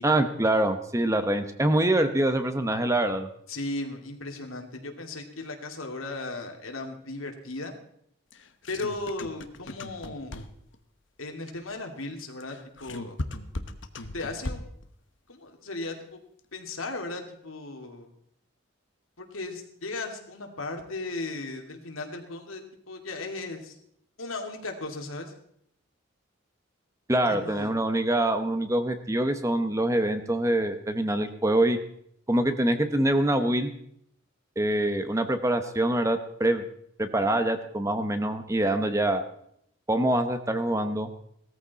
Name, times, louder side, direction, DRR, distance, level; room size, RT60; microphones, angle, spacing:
voice 1, 0.0-3.3 27.1-31.8 32.3-33.7 34.6-36.6 37.0-39.2 39.9-41.1, right 1 dB, 15° right, 8 dB, 0.9 m, -25 dB
voice 2, 3.5-7.7 8.7-10.3 11.2-13.1 14.1-14.7 15.3-16.2 16.5-18.1 19.2-23.7 24.2-25.3 27.2-27.7, left 2 dB, 80° left, 3 dB, 2.5 m, -36 dB
sound 1, 8.3-10.8 12.4-14.9, left 2 dB, 60° left, 1.1 m, -37 dB
17.5 x 14.0 x 4.2 m, 0.70 s
head